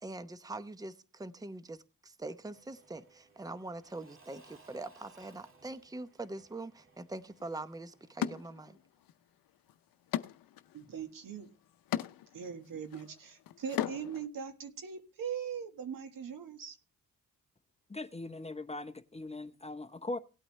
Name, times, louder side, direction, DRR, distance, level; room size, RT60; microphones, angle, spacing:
voice 1, 0.0-8.8, right 2 dB, 10° right, 0.8 m, -43 dB
Engine / Mechanisms / Drill, 2.3-9.0, right 3 dB, 40° right, 2.1 m, -62 dB
sound 1, 7.4-7.5 8.2-9.1 9.5-14.3, left 12 dB, 85° left, 0.6 m, -39 dB
voice 2, 10.7-11.5 12.3-16.8, right 7 dB, 75° right, 1.7 m, -41 dB
voice 3, 17.9-20.2, left 2 dB, 20° left, 0.8 m, -40 dB
17.5 x 8.7 x 3.2 m
cardioid pair, 65°, 33 cm